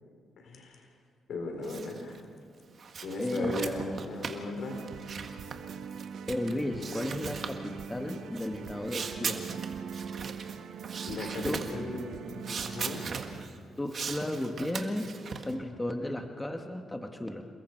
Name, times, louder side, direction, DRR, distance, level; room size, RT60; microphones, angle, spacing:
voice 1, 0.4-0.8 1.3-2.2 3.0-4.9 11.1-13.1, left 2 dB, 65° left, 3 dB, 3.8 m, -37 dB
sound 1, 1.6-2.2 2.6-6.5 6.8-7.6 8.3-10.5 10.8-11.8 12.4-13.6 13.9-15.5, right 5 dB, 50° right, 1.8 m, -39 dB
voice 2, 3.2-3.6 6.3-9.6 11.4-11.6 13.8-15.1 15.5-17.5, left 1 dB, 10° left, 4 dB, 1.5 m, -34 dB
sound 2, 4.7-13.4, right 7 dB, 70° right, 1.0 m, -42 dB
28.5 x 21.0 x 4.6 m, 2.1 s
cardioid pair, 105°, 0 cm